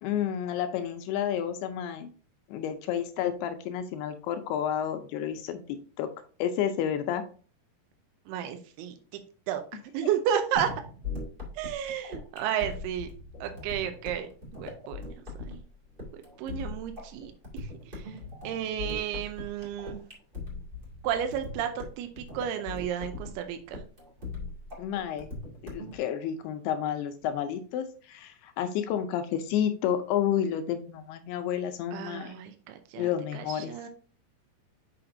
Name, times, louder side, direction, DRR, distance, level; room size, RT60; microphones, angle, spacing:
voice 1, 0.0-2.1 2.5-6.1 6.4-7.2 24.8-25.3 25.6-32.3 33.0-33.7, left 9 dB, 80° left, 8 dB, 2.4 m, -30 dB
voice 2, 8.3-9.2 9.5-9.6 9.9-10.7 11.5-13.1 13.4-15.1 15.5-15.6 16.1-18.2 18.4-20.0 21.0-23.8 31.9-33.1 33.3-33.9, right 9 dB, 80° right, 7 dB, 2.5 m, -32 dB
sound 1, 10.5-26.0, left 3 dB, 40° right, 0.7 m, -40 dB
6.7 x 5.7 x 2.6 m, 0.41 s
omnidirectional pair, 4.8 m